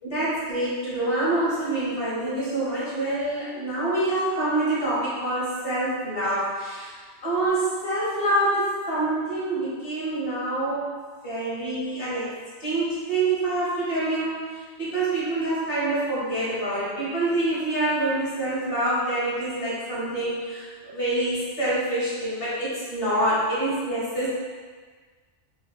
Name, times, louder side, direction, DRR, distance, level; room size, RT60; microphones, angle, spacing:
voice 1, 0.0-6.9 7.2-10.9 11.2-12.2 12.6-14.4 14.8-24.3, right 2 dB, 55° left, -9 dB, 1.6 m, -26 dB
4.1 x 2.2 x 4.0 m, 1.5 s
omnidirectional pair, 1.2 m